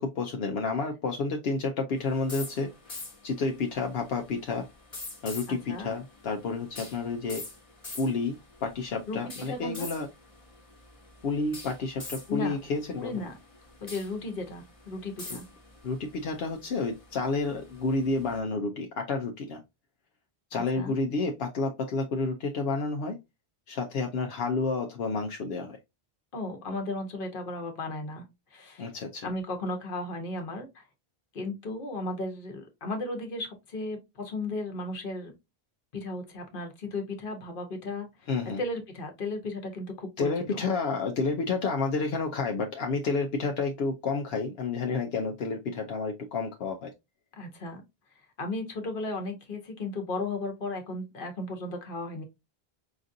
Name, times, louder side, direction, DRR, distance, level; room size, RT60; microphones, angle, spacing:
voice 1, 0.0-2.7 3.2-4.6 5.2-7.4 8.0-10.1 11.2-13.3 15.3-15.4 15.8-19.6 20.5-23.2 23.7-25.8 28.8-29.3 38.3-38.6 40.2-46.9, left 4 dB, 80° left, 0.8 m, -30 dB
sound 1, 2.0-18.4, left 2 dB, 35° left, 1.0 m, -46 dB
voice 2, 5.5-5.9 9.1-9.9 12.3-12.5 13.0-13.4 13.8-15.5 20.5-21.0 26.3-28.2 28.5-28.9 29.2-30.9 31.3-35.3 35.9-38.1 38.6-40.6 47.4-47.8 48.4-52.2, left 2 dB, 60° left, 1.1 m, -35 dB
5.0 x 2.5 x 2.6 m
omnidirectional pair, 1.0 m